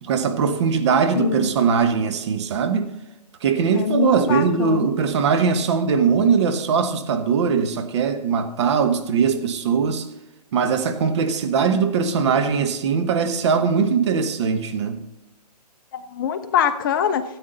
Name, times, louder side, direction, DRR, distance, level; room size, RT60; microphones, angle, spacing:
voice 1, 0.0-2.9 3.4-10.1 10.5-15.0, right 6 dB, 45° right, 1.2 m, -21 dB
voice 2, 1.2-1.5 3.7-4.9 15.9-17.2, left 8 dB, 30° left, 0.6 m, -23 dB
13.0 x 8.5 x 4.0 m
hypercardioid pair, 140°, 21 cm